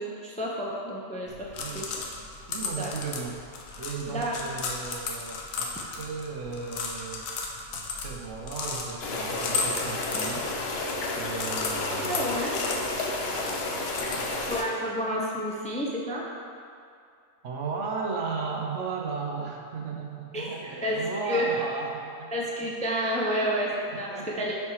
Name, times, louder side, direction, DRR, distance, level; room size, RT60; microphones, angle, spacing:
voice 1, 0.0-1.5 1.7-2.0 2.8-2.9 4.1-4.3 11.9-12.6 14.5-16.2 20.3-20.6 20.8-21.5 22.3-23.7 24.0-24.5, equal, 10° left, -3 dB, 0.5 m, -30 dB
sound 1, 1.3-14.6, left 4 dB, 85° left, 1.1 m, -36 dB
voice 2, 2.5-7.3 7.7-10.5 11.2-12.4 14.1-14.7 17.4-22.4 23.3-24.5, right 5 dB, 70° right, 0 dB, 1.1 m, -36 dB
sound 2, 9.0-14.6, left 2 dB, 55° left, 0.9 m, -31 dB
6.5 x 4.5 x 4.8 m, 2.3 s
omnidirectional pair, 1.4 m